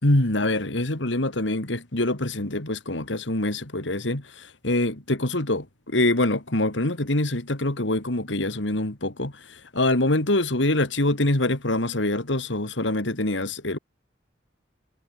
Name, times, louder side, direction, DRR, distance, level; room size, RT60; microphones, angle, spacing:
voice 1, 0.0-9.3 9.7-13.8, left 1 dB, 70° left, 3.0 m, -24 dB
head